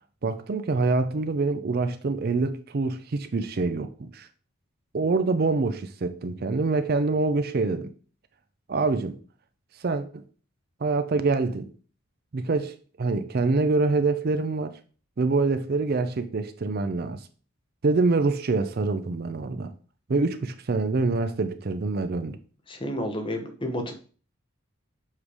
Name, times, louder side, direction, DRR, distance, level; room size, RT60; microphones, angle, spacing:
voice 1, 0.2-4.3 4.9-7.9 8.7-9.2 9.8-10.2 10.8-11.7 12.3-14.8 15.2-17.2 17.8-19.7 20.1-22.4, right 3 dB, 45° right, 0.4 m, -25 dB
voice 2, 22.7-23.9, equal, 25° left, 0.9 m, -30 dB
7.4 x 3.2 x 4.9 m
head